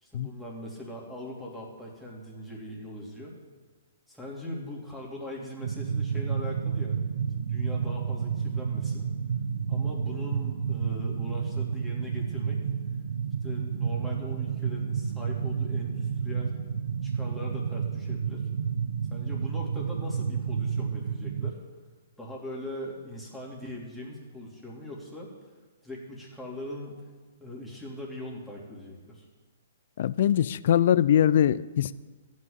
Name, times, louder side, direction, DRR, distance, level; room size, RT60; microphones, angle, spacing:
voice 1, 0.0-3.3 4.1-7.0 7.4-9.1 9.7-12.6 13.4-16.5 17.0-18.5 19.1-21.6 22.2-25.3 25.8-27.1 27.4-29.2, left 1 dB, ahead, -5 dB, 3.1 m, -41 dB
sound 1, 5.6-21.5, right 6 dB, 75° right, 0.6 m, -30 dB
voice 2, 30.0-31.9, left 10 dB, 55° left, 18 dB, 0.4 m, -22 dB
14.0 x 6.4 x 8.5 m, 1.4 s
hypercardioid pair, 130°, 0 cm